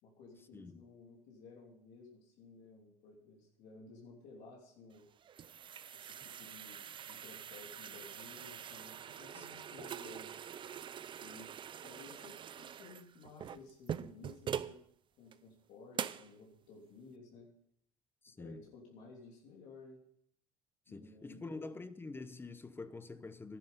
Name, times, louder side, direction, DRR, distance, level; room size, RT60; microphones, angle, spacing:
voice 1, 0.0-5.1 5.9-10.3 11.2-11.5 11.8-14.8 15.2-17.5 18.4-20.0 20.9-21.7, left 3 dB, 75° left, 3.2 m, -55 dB
sound 1, 5.0-14.8 15.3-15.4 15.9-16.3, right 9 dB, 40° right, 0.5 m, -44 dB
voice 2, 18.2-18.7 20.9-23.6, left 3 dB, 15° left, 0.8 m, -46 dB
11.5 x 10.0 x 5.4 m
cardioid pair, 100°, 13 cm